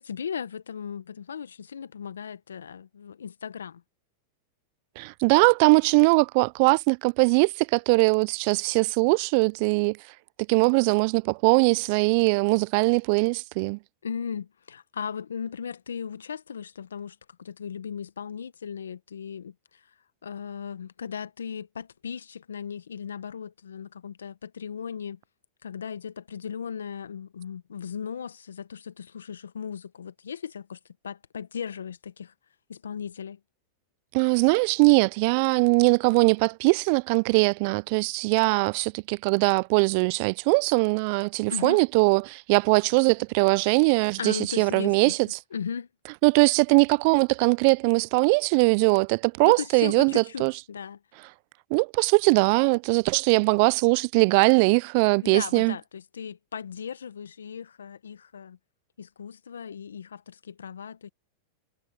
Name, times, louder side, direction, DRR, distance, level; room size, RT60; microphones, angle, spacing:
voice 1, 0.0-3.8 14.0-19.5 20.2-25.2 25.6-32.3 32.7-33.4 41.5-41.8 44.2-45.1 45.5-45.9 49.4-51.0 55.2-58.6 59.0-61.1, left 7 dB, 85° left, 1.3 m, -37 dB
voice 2, 5.0-10.0 10.5-13.8 34.1-45.2 46.2-50.5 51.7-55.8, right 31 dB, 55° right, 0.3 m, -21 dB
hypercardioid pair, 100°, 0 cm